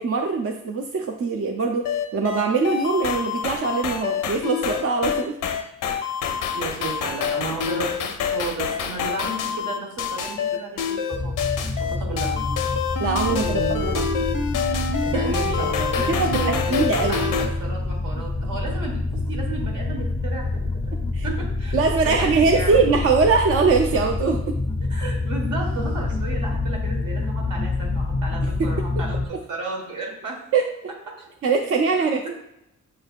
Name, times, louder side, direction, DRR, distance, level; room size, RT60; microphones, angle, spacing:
voice 1, 0.0-5.4 13.0-14.0 15.3-15.7 16.2-17.3 21.1-21.3 21.7-24.6 28.6-28.7 29.3-29.4 30.5-30.7 31.4-32.3, right 4 dB, 50° right, 3 dB, 0.5 m, -22 dB
sound 1, 1.8-17.5, left 6 dB, 90° left, 0.6 m, -26 dB
voice 2, 6.5-11.5 11.8-12.5 13.3-14.1 15.0-21.0 21.2-22.8 24.9-30.4 31.1-31.3 32.0-32.3, right 3 dB, 75° right, 0 dB, 1.5 m, -33 dB
sound 2, 11.1-29.3, left 3 dB, 15° left, 0.4 m, -27 dB
6.7 x 3.2 x 2.4 m, 0.81 s
cardioid pair, 100°, 31 cm